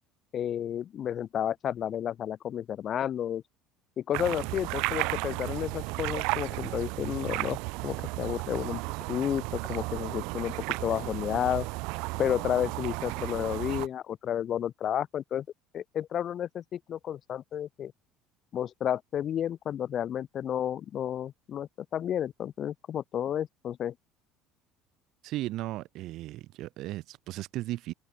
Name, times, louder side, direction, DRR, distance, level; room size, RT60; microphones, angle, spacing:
voice 1, 0.3-3.4 4.0-7.6 7.8-8.8 9.1-11.7 12.2-15.5 15.7-17.9 18.5-23.9, left 10 dB, 45° left, 0.7 m, -31 dB
sound 1, 4.1-13.9, right 28 dB, 80° right, 1.3 m, -34 dB
voice 2, 25.2-27.9, right 16 dB, 60° right, 2.2 m, -36 dB
cardioid pair, 125°, 0 cm